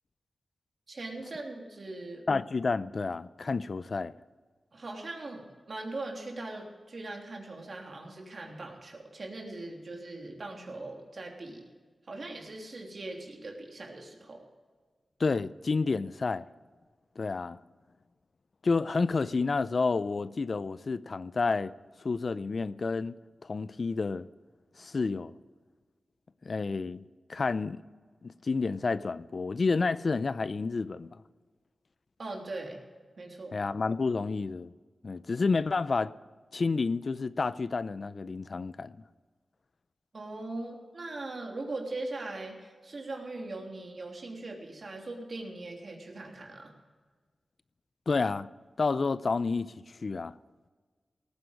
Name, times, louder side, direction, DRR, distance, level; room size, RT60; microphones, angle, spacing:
voice 1, 0.9-2.2 4.7-5.4 5.7-11.6 12.1-14.4 32.2-32.8 33.2-33.6 40.1-46.7, right 2 dB, 60° right, 3.2 m, -40 dB
voice 2, 2.3-4.1 15.2-16.5 17.2-17.6 18.6-21.7 22.0-23.2 23.4-24.3 24.8-25.3 26.4-27.0 27.3-27.8 28.2-31.2 33.5-34.7 35.0-36.1 36.5-39.0 48.1-48.5 48.8-49.7 50.0-50.4, left 4 dB, 60° left, 0.5 m, -30 dB
18.0 x 9.6 x 5.2 m
cardioid pair, 45°, 0 cm